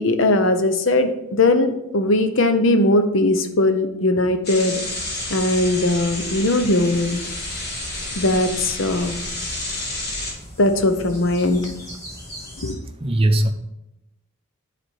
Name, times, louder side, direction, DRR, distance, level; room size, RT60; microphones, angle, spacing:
voice 1, 0.0-4.8 5.3-7.2 8.2-9.2 10.6-11.6 12.6-12.7, left 2 dB, 70° left, 8 dB, 0.8 m, -19 dB
sound 1, 4.4-10.3, left 2 dB, 50° left, 1.8 m, -30 dB
sound 2, 4.8-12.7, equal, 15° left, 3.0 m, -40 dB
voice 2, 13.0-13.5, right 1 dB, 25° right, 7 dB, 0.6 m, -18 dB
10.0 x 4.3 x 4.5 m, 0.87 s
head